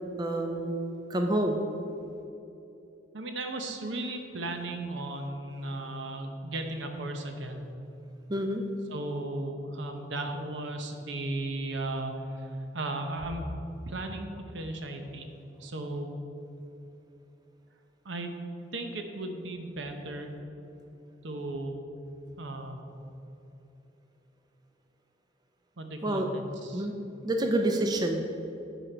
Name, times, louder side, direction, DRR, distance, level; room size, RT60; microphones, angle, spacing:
voice 1, 0.2-0.8 1.1-1.6 8.3-8.6 26.0-26.3 26.7-26.9 27.2-28.2, right 1 dB, 20° right, 3 dB, 0.5 m, -28 dB
voice 2, 3.1-7.7 8.9-12.1 12.4-13.4 13.9-14.3 14.5-15.3 15.6-16.1 18.0-18.3 18.7-20.3 21.2-21.8 22.4-22.9 25.8-26.9, right 2 dB, 75° right, 5 dB, 0.8 m, -36 dB
8.8 x 5.0 x 4.4 m, 2.8 s
head